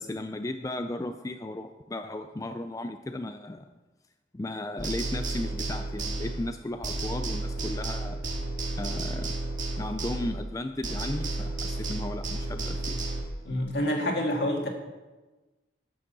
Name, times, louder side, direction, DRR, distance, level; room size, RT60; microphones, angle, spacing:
voice 1, 0.0-3.7 4.3-8.2 8.8-9.3 9.8-13.1, left 1 dB, 20° left, 7 dB, 0.4 m, -35 dB
sound 1, 4.8-6.6 6.8-10.6 10.8-13.2, right 2 dB, 45° right, 1.9 m, -32 dB
voice 2, 13.4-14.7, left 1 dB, 70° left, 1 dB, 2.0 m, -27 dB
12.0 x 6.3 x 6.8 m, 1.2 s
head